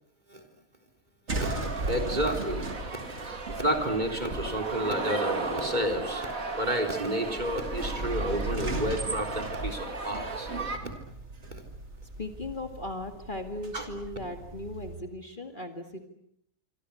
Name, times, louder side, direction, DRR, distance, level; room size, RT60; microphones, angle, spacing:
sound 1, 1.3-15.0, right 2 dB, 45° right, 2.8 m, -37 dB
sound 2, 1.4-10.8, right 3 dB, 65° right, 3.2 m, -35 dB
voice 1, 1.9-2.7 3.5-6.3 6.6-10.5 11.5-11.6 13.7-13.9, equal, 30° right, 4 dB, 4.0 m, -30 dB
voice 2, 12.2-16.1, left 1 dB, 35° left, 6 dB, 2.2 m, -38 dB
26.5 x 25.0 x 8.5 m, 0.74 s
omnidirectional pair, 1.6 m